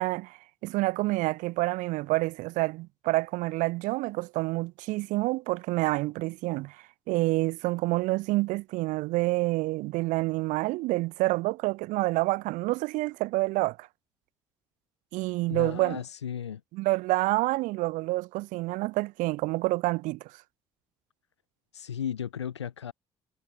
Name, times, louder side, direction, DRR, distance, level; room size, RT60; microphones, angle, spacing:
voice 1, 0.0-13.9 15.1-16.0 16.7-20.3, right 21 dB, 65° right, 2.1 m, -28 dB
voice 2, 15.5-16.6 21.7-22.9, left 9 dB, 85° left, 4.4 m, -35 dB
figure-of-eight pair, 50°, 14 cm